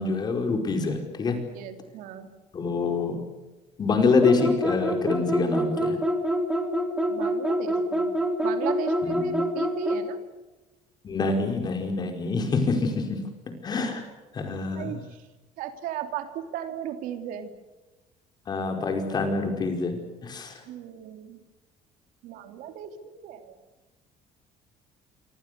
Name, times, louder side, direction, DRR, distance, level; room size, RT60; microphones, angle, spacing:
voice 1, 0.0-1.4 2.5-3.2 3.8-6.0 9.1-9.4 11.0-13.2 13.6-14.0 14.3-15.0 18.5-20.6, left 4 dB, 30° left, 5 dB, 5.0 m, -26 dB
voice 2, 1.5-2.3 7.1-8.1 8.4-10.2 14.7-15.2 15.6-17.5 20.7-21.4 22.2-23.6, right 10 dB, 70° right, 7 dB, 3.0 m, -36 dB
sound 1, 4.2-10.1, equal, 5° right, 2.7 m, -26 dB
26.5 x 25.5 x 6.8 m, 1.1 s
cardioid pair, 165°, 14 cm